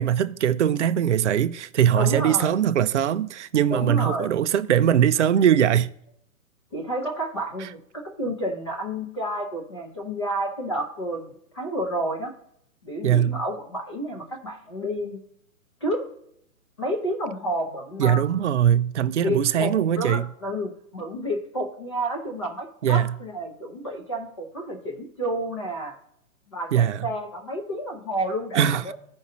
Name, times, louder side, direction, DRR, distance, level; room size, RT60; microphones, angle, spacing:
voice 1, 0.0-5.9 13.0-13.4 18.0-20.3 22.8-23.1 26.7-27.1 28.5-28.9, right 9 dB, 55° right, 0.5 m, -21 dB
voice 2, 1.9-2.5 3.7-4.3 6.7-11.3 11.5-12.3 12.8-15.2 15.8-16.1 16.8-18.2 19.2-25.9 26.5-28.9, right 1 dB, 20° left, 0.8 m, -30 dB
15.0 x 5.2 x 2.7 m
hypercardioid pair, 175°, 43 cm